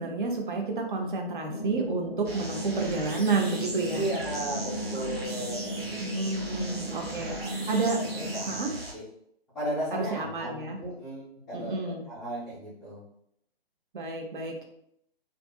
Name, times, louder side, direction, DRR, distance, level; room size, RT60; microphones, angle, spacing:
voice 1, 0.0-4.1 6.0-7.3 7.7-8.0 8.5-8.7 9.9-10.8 11.5-12.1 13.9-14.6, right 3 dB, 55° right, 1 dB, 0.7 m, -30 dB
sound 1, 1.5-8.5, equal, 70° left, 0.5 m, -36 dB
sound 2, 2.2-8.9, right 2 dB, 75° right, 1.0 m, -39 dB
voice 2, 3.9-6.3 7.2-7.5 8.0-9.0 9.5-13.0, right 1 dB, ahead, -20 dB, 0.4 m, -36 dB
2.6 x 2.5 x 2.3 m, 0.72 s
figure-of-eight pair, 135°, 30 cm